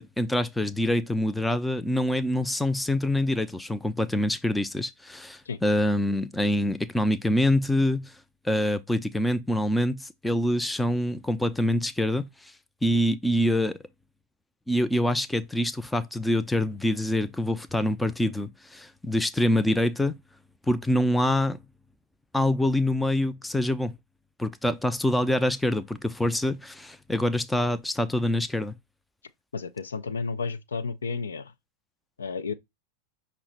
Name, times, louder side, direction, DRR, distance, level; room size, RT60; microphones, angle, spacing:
voice 1, 0.0-8.1 8.4-12.5 12.8-13.8 14.7-20.2 20.7-21.6 22.3-23.9 24.4-28.7, left 1 dB, 5° left, 0.4 m, -25 dB
voice 2, 29.5-31.5 32.2-32.5, left 4 dB, 70° left, 0.4 m, -32 dB
5.5 x 2.0 x 4.4 m
figure-of-eight pair, 90°, 0 cm